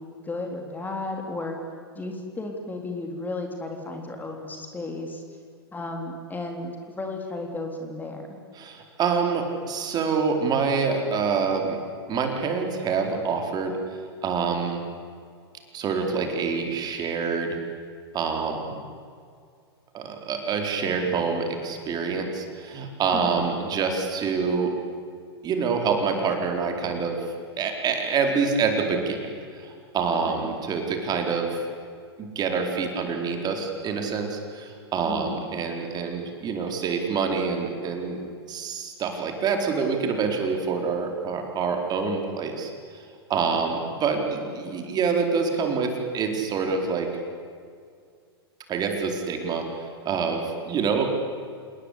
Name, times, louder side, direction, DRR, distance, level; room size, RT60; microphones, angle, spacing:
voice 1, 0.2-1.6 2.0-5.2 5.7-8.4 23.1-23.4 30.3-30.5 35.1-35.4 43.5-43.7, left 2 dB, 15° left, 3 dB, 3.7 m, -34 dB
voice 2, 8.6-11.8 12.1-14.8 15.7-17.6 18.1-18.7 19.9-24.7 25.4-31.6 32.2-38.2 38.5-43.0 43.3-47.1 48.7-51.1, right 5 dB, 30° right, 3 dB, 4.4 m, -26 dB
28.0 x 20.0 x 8.6 m, 2.2 s
hypercardioid pair, 100°, 14 cm